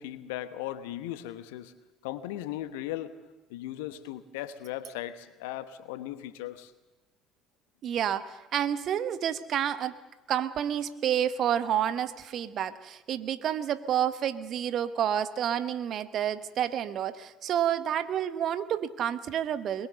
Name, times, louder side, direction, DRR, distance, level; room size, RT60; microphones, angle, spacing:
voice 1, 0.0-1.7 2.0-3.2 3.5-6.7, left 13 dB, 70° left, 12 dB, 1.1 m, -37 dB
voice 2, 7.8-9.9 10.3-19.9, right 10 dB, 50° right, 14 dB, 1.0 m, -29 dB
22.0 x 21.0 x 6.8 m, 1.1 s
figure-of-eight pair, 55°, 0 cm